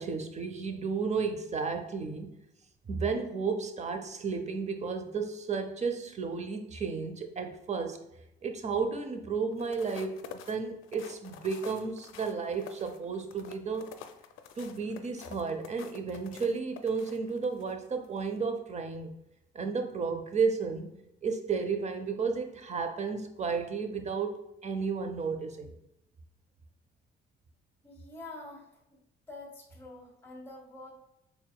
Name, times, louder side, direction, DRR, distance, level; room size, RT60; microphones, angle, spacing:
voice 1, 0.0-2.3 2.9-8.0 8.4-13.9 14.6-19.1 19.5-20.9 21.2-25.8, right 5 dB, 35° right, 6 dB, 0.6 m, -33 dB
sound 1, 9.5-17.7 18.2-18.4, left 8 dB, 85° left, 0.4 m, -48 dB
voice 2, 27.8-29.0 29.3-30.9, left 2 dB, 10° left, -1 dB, 1.5 m, -47 dB
4.6 x 3.4 x 2.2 m, 0.86 s
cardioid pair, 90°, 20 cm